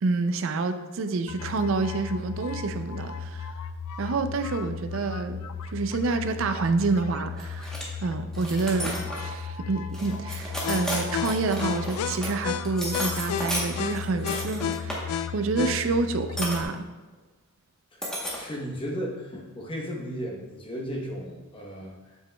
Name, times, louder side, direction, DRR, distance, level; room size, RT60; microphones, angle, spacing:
voice 1, 0.0-3.5 4.0-5.4 5.7-7.7 8.0-16.9, right 3 dB, 60° right, 9 dB, 0.4 m, -28 dB
sound 1, 1.3-16.6, left 6 dB, 90° left, 0.3 m, -34 dB
sound 2, 7.3-7.8 8.3-9.3 9.9-12.3 12.6-15.0 16.4-16.6 18.0-18.4, equal, 5° left, 0.9 m, -33 dB
voice 2, 18.3-21.9, equal, 25° left, -1 dB, 0.9 m, -35 dB
7.2 x 5.9 x 2.2 m, 1.2 s
head